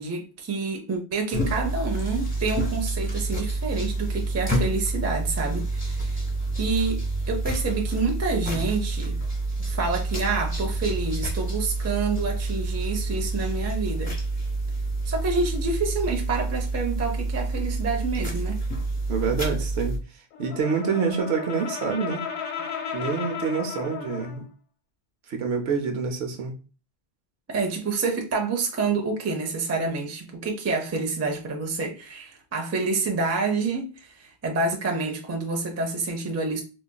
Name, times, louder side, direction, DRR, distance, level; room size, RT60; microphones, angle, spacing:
voice 1, 0.0-6.2 6.6-9.2 9.6-14.1 15.1-18.6 27.5-36.6, right 4 dB, 25° right, 0.4 m, -28 dB
sound 1, 1.3-20.0, right 2 dB, 15° left, 1.0 m, -28 dB
voice 2, 19.1-20.0 20.4-22.2 22.9-24.4 25.3-26.5, right 5 dB, 70° right, 0.9 m, -27 dB
Brass instrument, 20.3-24.5, left 7 dB, 65° left, 0.7 m, -34 dB
3.9 x 2.4 x 2.2 m
omnidirectional pair, 1.2 m